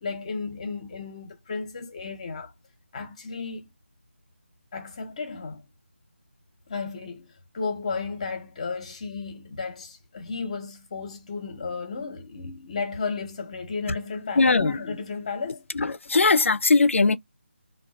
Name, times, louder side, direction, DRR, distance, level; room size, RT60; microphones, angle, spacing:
voice 1, 0.0-2.5 2.9-3.7 4.7-5.6 6.7-15.7, left 4 dB, 30° left, 0.8 m, -34 dB
voice 2, 14.4-14.8 15.7-17.2, left 3 dB, 75° left, 0.4 m, -20 dB
3.9 x 2.3 x 2.3 m
figure-of-eight pair, 165°, 7 cm